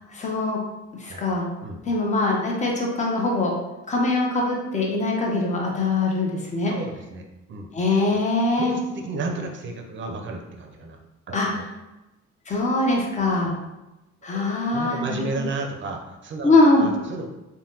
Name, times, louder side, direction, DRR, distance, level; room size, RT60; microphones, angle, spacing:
voice 1, 0.1-0.6 1.0-1.5 1.8-3.5 3.9-6.7 7.7-8.7 11.3-11.5 12.5-13.5 14.2-15.4 16.4-16.9, left 2 dB, 25° left, -1 dB, 0.6 m, -22 dB
voice 2, 6.7-7.7 8.6-11.0 11.3-11.6 13.4-13.5 14.3-14.5 14.7-17.3, right 3 dB, 40° right, 3 dB, 0.5 m, -33 dB
3.3 x 2.2 x 2.7 m, 1.0 s
cardioid pair, 90°, 30 cm